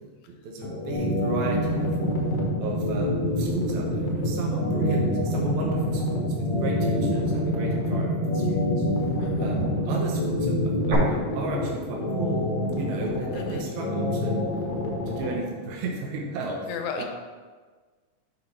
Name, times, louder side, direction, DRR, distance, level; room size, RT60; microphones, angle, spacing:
voice 1, 0.0-1.9 2.6-8.9 9.4-12.5 12.7-14.3 15.1-17.1, right 3 dB, 75° right, -1 dB, 2.3 m, -34 dB
sound 1, 0.6-15.4, left 2 dB, 55° left, 1.2 m, -28 dB
sound 2, 0.9-10.9, right 1 dB, 50° right, 2.8 m, -29 dB
voice 2, 9.2-9.6 13.3-13.7 16.7-17.1, left 6 dB, 80° left, 6 dB, 2.1 m, -34 dB
10.0 x 5.2 x 3.2 m, 1.4 s
omnidirectional pair, 3.5 m